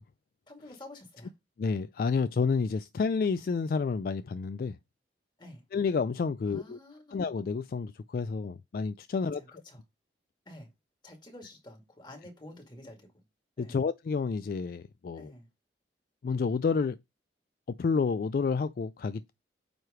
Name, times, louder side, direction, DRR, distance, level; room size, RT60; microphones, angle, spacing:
voice 1, 0.5-1.3 5.4-5.6 6.4-7.2 9.2-9.8 10.5-10.7 11.0-13.2 13.6-13.8 15.1-15.5, left 1 dB, 25° left, 2.0 m, -49 dB
voice 2, 1.6-4.8 5.7-6.8 7.1-9.6 13.6-15.3 16.2-17.0 17.7-19.3, left 5 dB, 55° left, 0.3 m, -30 dB
9.0 x 3.2 x 4.9 m
head